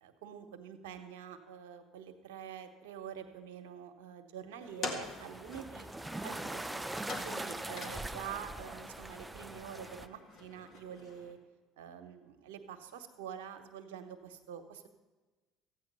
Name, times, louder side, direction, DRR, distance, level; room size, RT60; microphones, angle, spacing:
voice 1, 0.0-5.9 6.2-6.8 7.2-11.4 11.8-14.9, right 8 dB, 80° right, 7 dB, 1.1 m, -46 dB
sound 1, 4.6-11.3, left 3 dB, 55° left, 2.0 m, -46 dB
sound 2, 5.0-10.1, right 2 dB, 10° right, 0.4 m, -42 dB
14.0 x 9.0 x 5.4 m, 1.2 s
hypercardioid pair, 75°, 0 cm